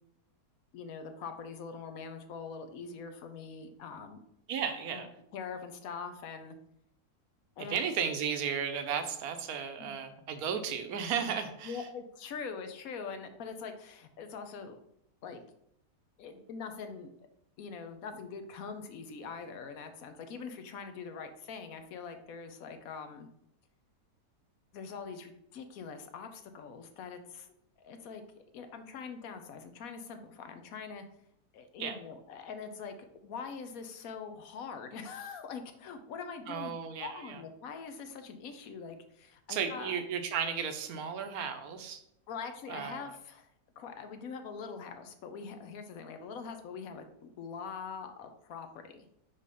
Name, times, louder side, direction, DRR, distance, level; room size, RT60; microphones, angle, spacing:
voice 1, 0.7-4.2 4.9-5.0 5.3-6.6 7.6-7.8 9.8-9.9 11.6-14.8 15.2-15.4 16.2-17.1 17.6-23.3 24.7-27.5 27.8-31.0 31.5-36.7 37.0-40.0 42.3-43.5 43.8-47.1 47.4-49.1, left 5 dB, 65° left, 7 dB, 1.0 m, -43 dB
voice 2, 4.5-5.1 7.7-11.8 31.8-32.0 36.5-37.4 39.5-42.0 42.7-43.0, right 7 dB, 70° right, 8 dB, 1.1 m, -34 dB
5.3 x 3.3 x 5.6 m, 0.74 s
omnidirectional pair, 1.7 m